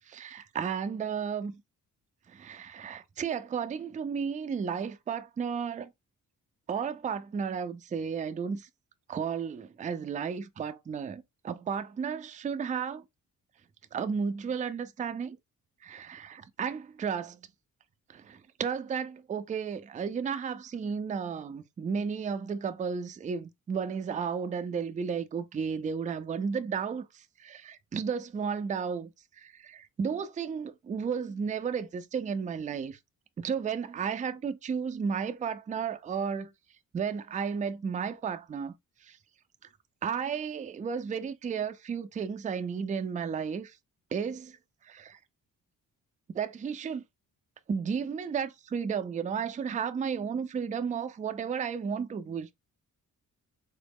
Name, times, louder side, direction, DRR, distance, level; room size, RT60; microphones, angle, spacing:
voice 1, 0.1-1.6 2.3-5.9 6.7-8.7 9.1-13.0 13.9-15.4 15.8-17.4 18.1-29.1 29.4-33.0 33.4-36.5 36.9-38.7 39.1-39.2 40.0-43.7 44.1-44.6 44.9-45.2 46.3-47.0 47.7-52.5, right 6 dB, 25° right, 0.3 m, -33 dB
3.9 x 2.0 x 3.4 m
cardioid pair, 110°, 33 cm